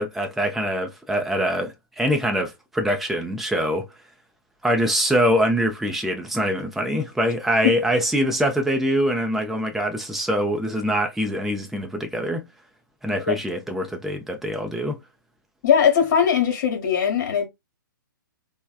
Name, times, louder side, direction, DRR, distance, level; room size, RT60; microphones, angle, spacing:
voice 1, 0.0-3.9 4.6-12.4 13.0-15.0, equal, ahead, 0.6 m, -24 dB
voice 2, 15.6-17.5, left 8 dB, 55° left, 1.2 m, -20 dB
3.3 x 2.2 x 2.3 m
hypercardioid pair, 130°, 11 cm